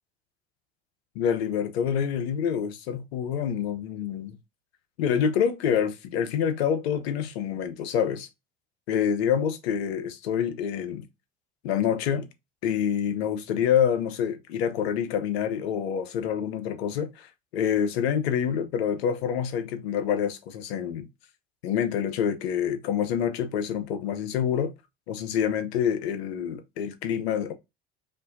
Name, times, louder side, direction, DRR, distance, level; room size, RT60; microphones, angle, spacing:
voice 1, 1.1-4.4 5.0-8.3 8.9-11.1 11.6-12.3 12.6-21.1 21.6-24.7 25.1-27.5, left 8 dB, 75° left, 0.8 m, -27 dB
5.2 x 2.6 x 2.6 m
hypercardioid pair, 70°, 31 cm